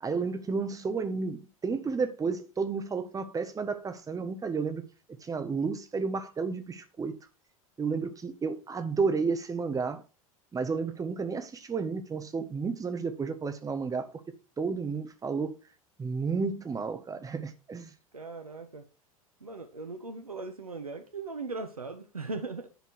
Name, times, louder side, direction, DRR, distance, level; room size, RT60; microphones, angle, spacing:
voice 1, 0.0-4.8 5.2-7.2 7.8-10.0 10.5-14.1 14.6-15.6 16.0-17.9, right 4 dB, 20° right, 1.3 m, -32 dB
voice 2, 18.1-18.8 19.4-22.7, right 3 dB, 90° right, 0.9 m, -39 dB
10.5 x 4.5 x 4.7 m
figure-of-eight pair, 80°, 18 cm